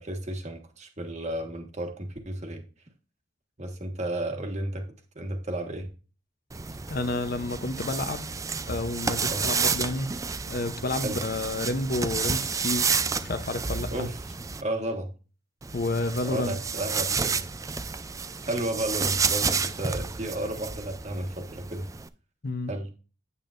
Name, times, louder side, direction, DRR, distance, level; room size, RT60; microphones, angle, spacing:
voice 1, 0.0-2.6 3.6-4.9 5.1-5.9 9.3-9.5 11.0-11.2 13.9-14.2 14.6-15.1 16.2-17.4 18.4-21.9 22.7-22.9, right 1 dB, 35° right, 1.4 m, -32 dB
sound 1, 6.5-14.6 15.6-22.1, right 5 dB, 15° right, 0.3 m, -30 dB
voice 2, 6.9-8.3 8.7-10.1 10.5-13.9 15.7-16.6 22.4-22.7, left 2 dB, 50° left, 0.7 m, -30 dB
8.6 x 8.4 x 2.5 m
head